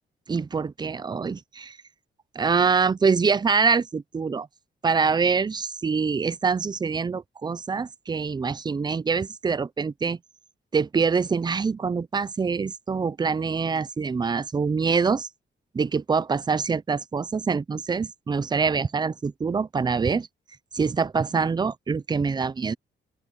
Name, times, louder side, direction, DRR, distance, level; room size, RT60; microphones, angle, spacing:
voice 1, 0.3-1.8 2.4-4.5 4.8-10.2 10.7-15.3 15.7-20.3 20.7-22.7, right 5 dB, 20° right, 0.5 m, -25 dB
open air
wide cardioid pair, 135°, 19 cm